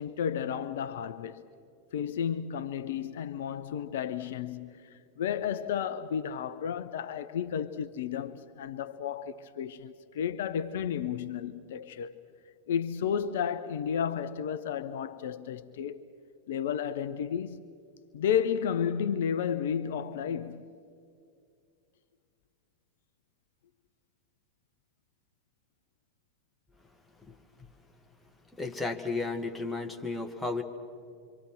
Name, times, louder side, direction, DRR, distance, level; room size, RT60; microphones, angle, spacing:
voice 1, 0.0-1.4 1.9-12.2 12.7-16.0 16.5-17.6 18.1-20.7, left 8 dB, 55° left, 0.6 m, -32 dB
voice 2, 28.5-30.6, left 3 dB, 5° left, 1.8 m, -33 dB
26.5 x 25.0 x 6.3 m
figure-of-eight pair, 90°, 0 cm